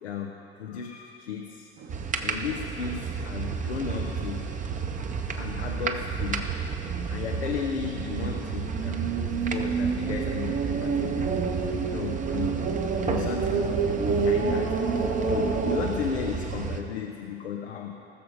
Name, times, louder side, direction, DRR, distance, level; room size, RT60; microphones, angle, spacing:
voice 1, 0.0-1.7 2.2-4.6 5.4-6.6 7.1-11.6 11.9-13.8 14.1-18.0, left 7 dB, 80° left, 2 dB, 0.9 m, -35 dB
sound 1, 1.8-15.9, right 5 dB, 40° right, 1.3 m, -31 dB
sound 2, 1.9-16.8, right 6 dB, 25° right, 1.0 m, -32 dB
19.0 x 7.0 x 5.2 m, 2.9 s
figure-of-eight pair, 70°, 33 cm